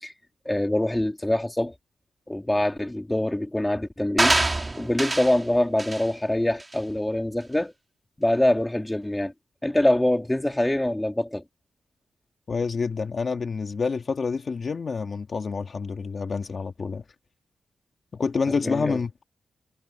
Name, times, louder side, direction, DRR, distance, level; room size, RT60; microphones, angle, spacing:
voice 1, 0.4-1.7 2.3-4.4 4.8-7.7 8.2-9.3 9.6-11.4 18.5-19.0, left 1 dB, 10° left, 3.3 m, -24 dB
sound 1, 4.2-5.4 5.8-6.1 6.6-6.7, right 2 dB, 20° right, 3.5 m, -24 dB
voice 2, 12.5-17.0 18.1-19.2, left 5 dB, 40° left, 1.6 m, -28 dB
wide cardioid pair, 120°, 0 cm